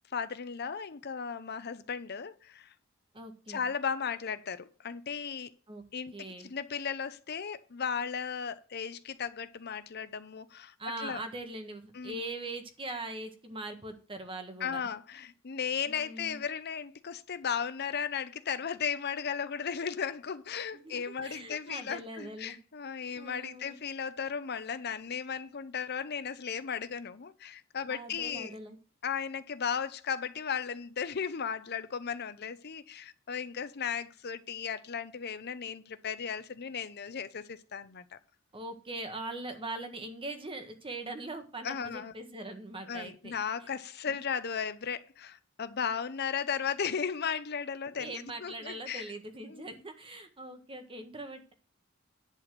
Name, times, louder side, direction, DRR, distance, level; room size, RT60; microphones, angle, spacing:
voice 1, 0.1-2.7 3.5-5.5 5.9-10.7 11.0-11.2 11.9-12.2 14.6-28.6 29.0-38.2 41.6-42.1 42.9-49.1 49.5-49.7, left 7 dB, 50° left, 0.7 m, -36 dB
voice 2, 3.1-3.7 5.7-5.8 6.1-6.5 10.8-14.8 15.9-16.4 20.7-22.6 23.1-23.8 27.9-28.8 38.5-43.3 44.1-44.2 48.0-51.5, right 2 dB, 25° right, 1.5 m, -41 dB
10.5 x 4.3 x 7.6 m
head